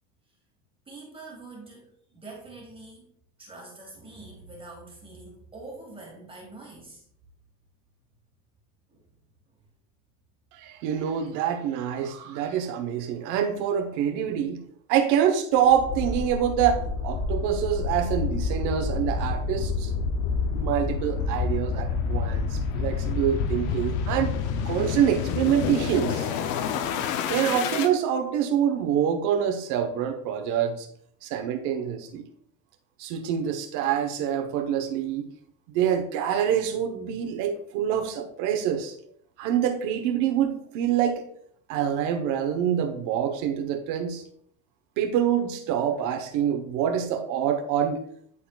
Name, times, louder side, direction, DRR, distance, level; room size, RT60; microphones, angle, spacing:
voice 1, 0.9-3.1 3.4-7.1 8.9-9.0 9.5-9.6, right 2 dB, 15° right, -1 dB, 1.9 m, -45 dB
voice 2, 10.5-19.9 20.5-24.3 24.6-26.3 27.3-30.9 31.2-32.2 33.0-35.3 35.7-39.0 39.4-41.2 41.7-44.2 45.0-48.0, right 9 dB, 65° right, 6 dB, 1.1 m, -26 dB
sound 1, 15.7-27.9, left 5 dB, 60° left, 0.7 m, -28 dB
11.0 x 4.2 x 2.4 m, 0.67 s
supercardioid pair, 125°, 34 cm